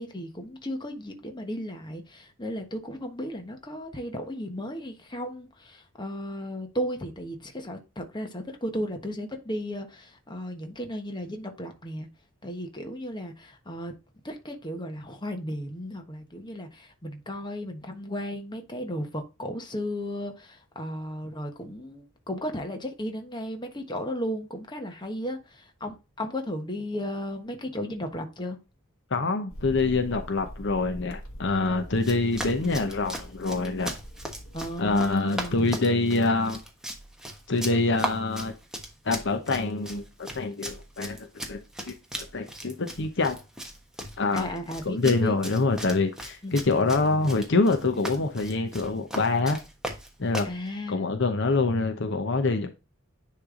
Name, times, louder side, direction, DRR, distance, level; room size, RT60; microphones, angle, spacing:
voice 1, 0.0-12.1 12.4-13.9 14.2-28.6 34.5-35.7 44.3-45.4 46.4-47.0 50.4-51.2 52.6-52.7, equal, 20° left, 1.2 m, -35 dB
voice 2, 29.1-33.9 34.8-36.6 37.5-38.5 39.0-41.6 41.9-43.4 44.2-44.5 44.8-49.6 50.2-50.5 50.9-52.7, left 3 dB, 60° left, 0.9 m, -25 dB
sound 1, 29.5-35.2, equal, 80° left, 1.7 m, -43 dB
Run, 32.0-50.6, right 1 dB, 5° right, 1.2 m, -38 dB
10.0 x 3.4 x 3.8 m
head